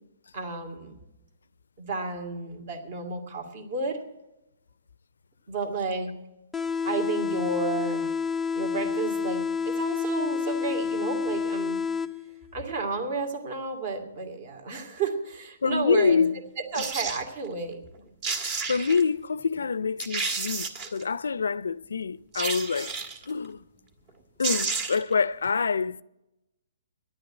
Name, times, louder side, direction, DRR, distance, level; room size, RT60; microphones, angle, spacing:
voice 1, 0.3-1.0 1.8-4.0 5.5-6.1 6.8-8.1 8.5-11.8 12.5-16.2 16.6-17.8, right 4 dB, 45° right, 2.4 m, -32 dB
sound 1, 6.5-12.5, left 5 dB, 5° left, 0.4 m, -29 dB
voice 2, 15.6-16.3 16.7-16.8 18.7-22.9 23.3-23.6 24.4-26.0, left 5 dB, 85° left, 0.4 m, -26 dB
sound 2, 16.7-17.2 17.9-18.0 18.2-19.0 19.6-19.7 20.0-21.0 22.3-23.2 24.1-24.2 24.4-25.1 25.4-25.5, right 4 dB, 30° right, 1.5 m, -31 dB
10.5 x 8.9 x 8.8 m
hypercardioid pair, 150°, 0 cm